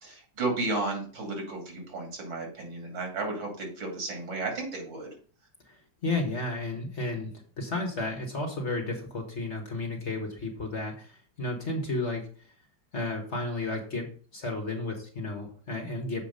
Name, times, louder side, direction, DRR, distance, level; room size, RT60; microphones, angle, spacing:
voice 1, 0.0-5.1, right 2 dB, 80° right, 1 dB, 3.3 m, -33 dB
voice 2, 5.7-12.3 12.9-16.2, left 2 dB, 40° left, 2 dB, 1.6 m, -33 dB
7.3 x 5.0 x 5.2 m, 0.42 s
omnidirectional pair, 2.1 m